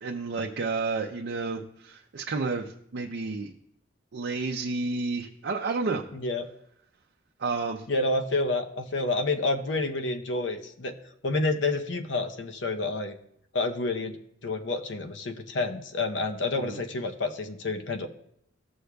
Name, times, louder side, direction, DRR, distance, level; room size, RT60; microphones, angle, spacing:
voice 1, 0.0-3.5 4.1-6.0 7.4-7.8 16.6-16.8, right 3 dB, 65° right, 1 dB, 0.6 m, -31 dB
voice 2, 6.1-6.5 7.9-11.0 11.2-13.2 13.5-14.2 14.4-18.1, left 2 dB, 70° left, 6 dB, 0.8 m, -29 dB
15.0 x 6.5 x 2.3 m, 0.71 s
head